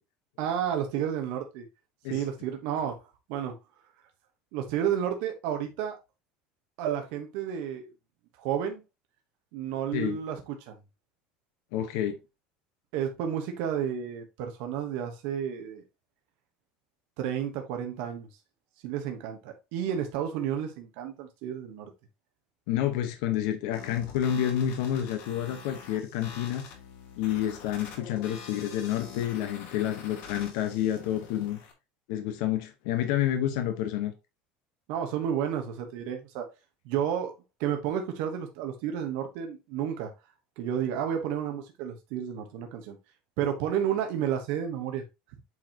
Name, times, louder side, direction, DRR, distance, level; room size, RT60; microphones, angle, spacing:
voice 1, 0.4-1.6 2.1-2.9 3.3-3.5 4.5-6.0 6.8-7.9 8.4-8.8 9.5-10.7 12.9-15.8 17.2-18.3 18.8-21.9 34.9-36.5 36.8-37.3 37.6-40.1 40.6-43.0 43.4-45.0, right 9 dB, 65° right, 1.2 m, -31 dB
voice 2, 11.7-12.2 22.7-26.7 27.2-31.6 32.1-34.1, left 11 dB, 75° left, 1.2 m, -29 dB
sound 1, 23.7-31.7, left 5 dB, 55° left, 2.3 m, -46 dB
8.4 x 4.5 x 3.0 m
cardioid pair, 170°, 3 cm